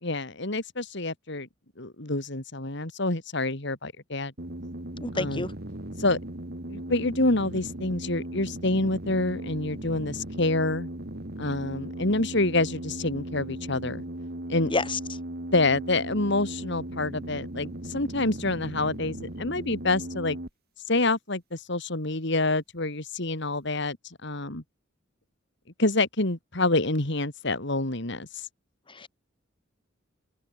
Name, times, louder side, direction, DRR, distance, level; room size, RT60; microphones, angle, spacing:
voice 1, 0.0-1.5 1.8-4.3 5.1-5.4 6.0-6.2 6.7-10.9 11.4-14.0 14.5-14.7 15.5-20.4 20.9-24.6 25.8-28.3, left 2 dB, 65° left, 3.2 m, -27 dB
sound 1, 4.4-20.5, right 1 dB, 55° right, 2.7 m, -37 dB
voice 2, 5.0-5.5 14.7-15.0 28.9-29.1, left 3 dB, 25° left, 2.7 m, -29 dB
open air
head